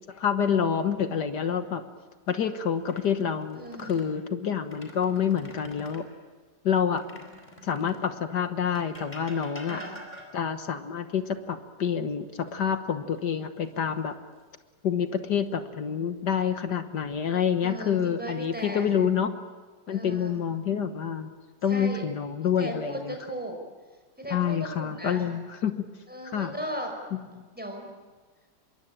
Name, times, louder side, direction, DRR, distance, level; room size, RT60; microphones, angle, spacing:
voice 1, 0.1-1.8 2.3-6.1 6.6-7.0 7.6-9.8 10.3-14.2 14.8-19.3 19.9-21.3 21.6-23.2 24.3-25.9 26.3-26.6 27.4-27.5, left 7 dB, 65° left, 9 dB, 1.8 m, -27 dB
sound 1, 2.7-4.1 4.6-6.1 7.0-8.1 8.8-10.6 12.5-13.2 13.6-13.8 16.7-17.3 18.0-18.7, left 1 dB, 25° left, 4.7 m, -47 dB
voice 2, 3.5-4.0 9.7-10.0 17.6-18.9 19.9-20.3 21.7-22.1 22.6-23.6 24.2-25.3 26.1-26.9 27.6-27.9, equal, 5° right, 3 dB, 5.2 m, -37 dB
25.0 x 22.5 x 8.9 m, 1.3 s
omnidirectional pair, 1.9 m